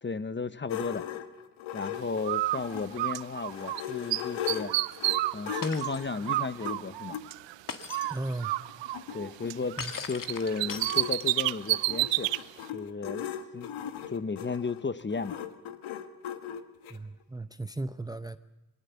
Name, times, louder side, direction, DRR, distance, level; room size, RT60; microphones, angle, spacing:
voice 1, 0.0-1.0 1.7-4.7 5.3-7.2 9.1-9.8 10.0-12.3 12.7-13.3 13.5-13.7 14.1-15.4, left 4 dB, 25° left, 1.0 m, -34 dB
sound 1, 0.7-3.0 3.4-7.2 8.0-8.1 8.4-8.5 8.7-17.0, left 10 dB, 75° left, 1.5 m, -39 dB
Bird, 2.2-3.8 4.1-7.5 7.9-10.0 10.3-12.4, right 16 dB, 65° right, 0.7 m, -30 dB
Shatter, 5.6-6.1 7.7-8.2 9.8-11.5, left 6 dB, 40° left, 1.9 m, -39 dB
voice 2, 8.1-8.5 9.8-9.9 16.9-18.4, right 2 dB, 10° right, 0.7 m, -36 dB
22.0 x 18.0 x 7.1 m
supercardioid pair, 60°, 47 cm